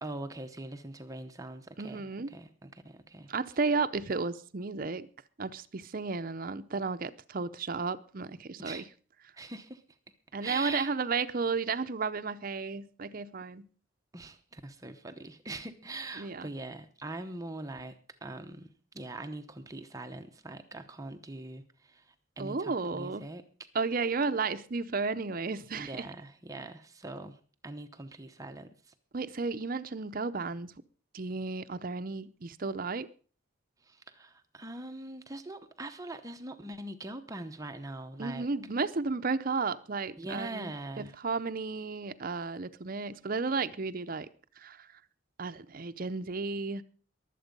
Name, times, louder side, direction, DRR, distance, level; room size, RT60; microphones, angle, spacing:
voice 1, 0.0-3.3 8.6-8.9 9.3-9.8 10.4-10.9 14.1-17.9 18.2-18.7 18.9-23.4 25.7-28.9 33.8-38.5 40.2-41.2, right 2 dB, 15° right, 0.9 m, -42 dB
voice 2, 1.8-2.3 3.3-5.1 5.4-8.8 10.3-13.7 16.2-16.5 22.4-23.3 23.7-26.1 29.1-30.7 31.1-33.1 38.2-40.7 41.0-44.3 44.6-44.9 45.4-46.8, right 4 dB, 45° right, 0.6 m, -33 dB
22.0 x 8.1 x 5.3 m
head